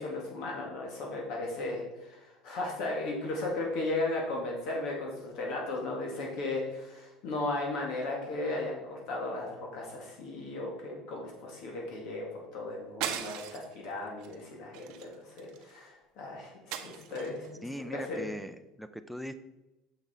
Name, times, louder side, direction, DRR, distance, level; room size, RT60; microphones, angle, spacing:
voice 1, 0.0-12.3 12.5-17.6 18.1-18.3, left 2 dB, 55° left, -1 dB, 1.8 m, -36 dB
sound 1, 13.0-13.8 14.2-14.4 14.7-15.7 16.7-17.5, right 10 dB, 65° right, 0.7 m, -38 dB
voice 2, 17.6-19.3, equal, ahead, 10 dB, 0.4 m, -40 dB
6.8 x 6.0 x 4.2 m, 1.0 s
cardioid pair, 150°, 0 cm